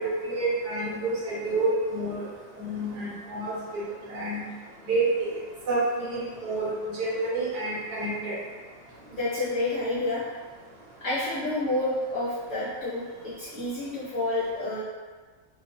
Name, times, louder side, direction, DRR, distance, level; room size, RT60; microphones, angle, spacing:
voice 1, 0.0-2.3 2.6-4.5 4.9-5.3 5.7-8.4, right 2 dB, 70° right, -6 dB, 1.3 m, -28 dB
voice 2, 9.1-10.2 11.0-14.8, left 2 dB, 60° left, -10 dB, 0.9 m, -29 dB
2.6 x 2.3 x 2.5 m, 1.5 s
omnidirectional pair, 1.9 m